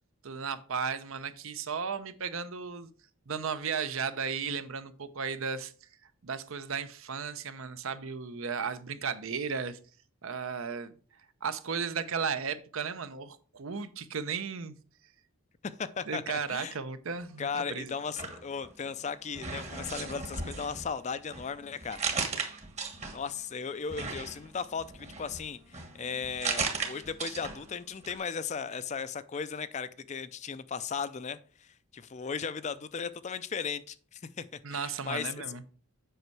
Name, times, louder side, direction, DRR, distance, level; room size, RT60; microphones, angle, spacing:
voice 1, 0.2-2.9 3.3-5.7 6.2-9.8 10.2-10.9 11.4-14.7 16.1-17.9 34.6-35.6, right 6 dB, 65° right, 0.7 m, -35 dB
voice 2, 15.6-16.8 17.4-22.0 23.1-35.6, left 6 dB, 30° left, 0.4 m, -36 dB
sound 1, 18.0-19.0 19.3-23.4 23.9-27.8 28.0-28.1, right 4 dB, 30° right, 1.2 m, -37 dB
7.9 x 5.4 x 4.6 m
head